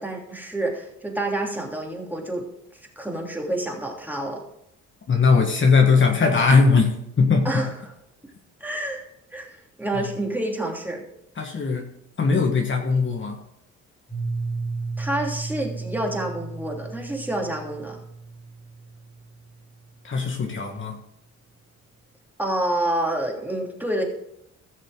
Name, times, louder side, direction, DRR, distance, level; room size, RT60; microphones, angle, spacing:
voice 1, 0.0-2.4 3.0-4.4 7.4-7.9 8.6-9.1 9.3-11.0 15.0-18.0 22.4-24.0, right 1 dB, 5° right, 0 dB, 3.0 m, -28 dB
voice 2, 5.1-7.6 9.9-10.1 11.4-11.9 12.2-13.4 20.0-21.0, left 4 dB, 40° left, 2 dB, 1.7 m, -20 dB
Piano, 14.1-19.7, right 3 dB, 20° left, 3.2 m, -34 dB
16.0 x 6.6 x 3.9 m, 0.78 s
cardioid pair, 90°, 30 cm